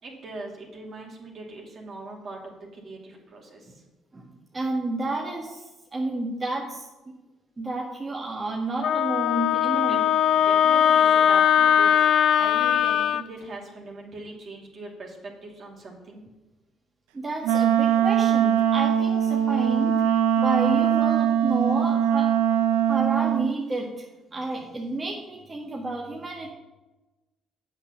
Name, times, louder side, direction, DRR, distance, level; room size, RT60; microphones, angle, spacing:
voice 1, 0.0-3.8 9.8-10.0 10.3-16.2, right 2 dB, 55° right, -1 dB, 2.6 m, -40 dB
voice 2, 4.5-5.6 5.9-6.9 7.6-10.0 17.1-22.3 22.9-24.0 24.3-26.5, right 2 dB, 30° right, -2 dB, 1.7 m, -30 dB
Wind instrument woodwind instrument, 8.8-13.2, left 9 dB, 65° left, 0.3 m, -20 dB
Wind instrument woodwind instrument 2, 17.4-23.5, right 9 dB, 85° right, 0.5 m, -22 dB
8.0 x 5.8 x 7.1 m, 1.1 s
supercardioid pair, 60°, 0 cm